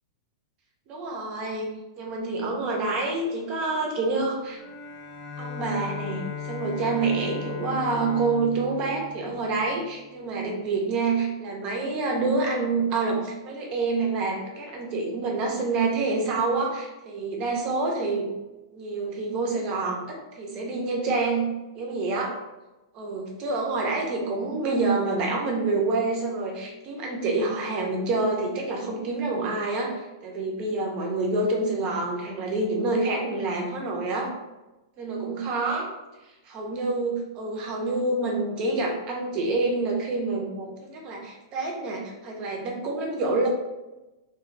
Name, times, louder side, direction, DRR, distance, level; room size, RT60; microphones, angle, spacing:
voice 1, 0.9-1.7 2.0-4.6 5.4-18.3 18.7-21.5 21.8-22.4 22.9-29.9 30.2-34.3 35.0-35.9 36.5-43.5, right 3 dB, 40° right, 0 dB, 0.7 m, -27 dB
Bowed string instrument, 4.5-10.0, left 5 dB, 25° left, 0.6 m, -37 dB
2.4 x 2.3 x 3.1 m, 1.1 s
hypercardioid pair, 110°, 3 cm